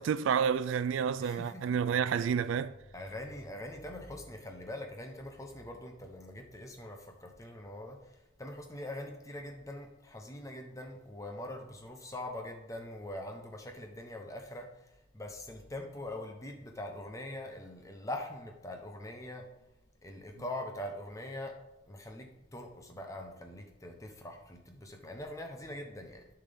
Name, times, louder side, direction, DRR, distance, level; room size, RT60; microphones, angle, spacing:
voice 1, 0.0-2.7, right 7 dB, 75° right, 0.3 m, -29 dB
voice 2, 1.2-1.8 2.2-2.3 2.9-8.0 8.4-14.7 15.1-19.5 20.0-21.5 21.9-26.3, left 1 dB, 15° left, 0.8 m, -43 dB
10.5 x 5.7 x 3.5 m
head